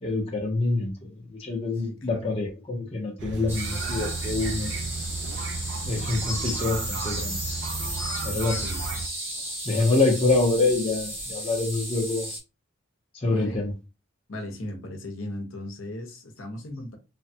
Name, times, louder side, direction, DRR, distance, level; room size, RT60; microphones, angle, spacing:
voice 1, 0.0-4.8 5.9-7.4 8.2-8.6 9.6-12.3 13.1-13.8, left 3 dB, 25° left, 0.7 m, -26 dB
voice 2, 1.8-2.3 8.5-8.8 13.2-13.6 14.3-17.0, left 1 dB, 65° left, 0.8 m, -37 dB
sound 1, 3.2-9.1, right 4 dB, 55° right, 0.3 m, -33 dB
sound 2, 3.5-12.4, right 1 dB, 10° right, 0.8 m, -34 dB
3.3 x 2.2 x 2.7 m
head